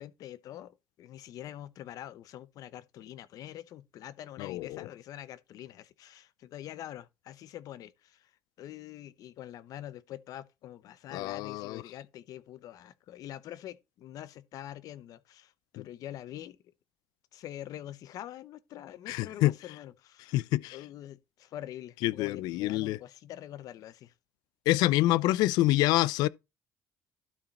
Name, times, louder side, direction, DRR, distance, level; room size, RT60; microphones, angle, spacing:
voice 1, 0.0-8.3 8.6-16.6 17.3-20.3 20.7-24.1, left 12 dB, 65° left, 0.8 m, -45 dB
voice 2, 4.4-4.8 11.1-11.8 19.1-19.5 20.3-20.8 22.0-23.0 24.7-26.3, left 16 dB, 85° left, 0.4 m, -26 dB
12.0 x 4.9 x 4.1 m
cardioid pair, 125°, 7 cm